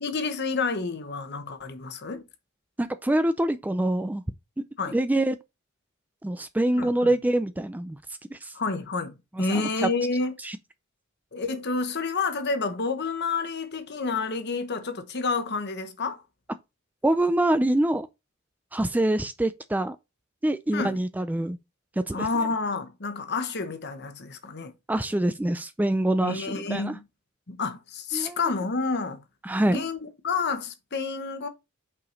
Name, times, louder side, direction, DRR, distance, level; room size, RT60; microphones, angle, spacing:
voice 1, 0.0-2.2 4.8-5.0 6.8-7.1 8.5-10.3 11.3-16.2 20.7-21.0 22.1-24.7 26.2-27.0 27.5-29.2 29.6-31.5, left 4 dB, 55° left, 1.1 m, -29 dB
voice 2, 2.8-4.2 4.9-5.4 6.2-8.0 8.3-8.5 9.4-9.9 10.4-10.6 17.0-18.1 18.7-20.0 20.4-21.6 22.1-22.3 24.9-27.0 28.1-28.4 29.4-29.8, right 1 dB, 10° right, 0.3 m, -25 dB
5.7 x 4.9 x 3.9 m
head